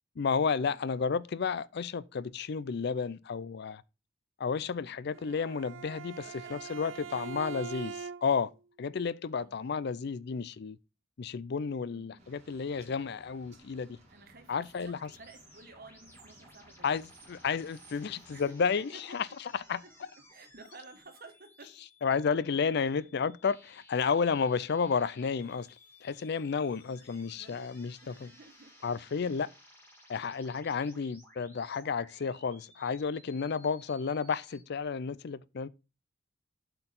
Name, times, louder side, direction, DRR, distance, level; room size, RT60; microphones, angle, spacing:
voice 1, 0.2-3.8 4.4-8.5 8.8-10.8 11.2-14.0 14.5-15.1 16.8-19.3 19.7-19.8 22.0-25.7 26.0-28.3 28.8-29.5 30.1-35.7, left 5 dB, 60° left, 0.4 m, -32 dB
Bowed string instrument, 5.1-8.5, right 6 dB, 85° right, 0.6 m, -43 dB
voice 2, 6.1-7.3 9.3-9.6 11.9-12.2 14.1-16.9 17.9-18.4 18.9-19.2 20.3-21.7 22.7-23.2 27.3-27.7 28.0-29.1 30.8-31.0, right 3 dB, 50° right, 1.4 m, -54 dB
sound 1, 12.2-18.4, right 2 dB, 35° right, 2.5 m, -59 dB
sound 2, 14.9-34.6, left 1 dB, 10° left, 2.5 m, -58 dB
7.9 x 4.5 x 3.7 m
head